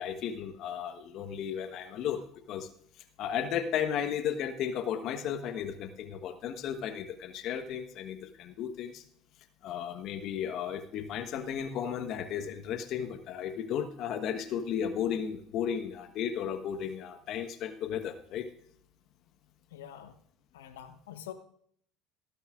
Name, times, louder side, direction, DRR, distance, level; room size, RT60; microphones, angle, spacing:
voice 1, 0.0-2.7 3.2-9.0 9.6-18.5, left 8 dB, 55° left, 9 dB, 1.3 m, -34 dB
voice 2, 19.7-20.1 20.5-21.3, left 10 dB, 80° left, 9 dB, 0.9 m, -45 dB
16.0 x 13.0 x 2.5 m, 0.65 s
hypercardioid pair, 70°, 0 cm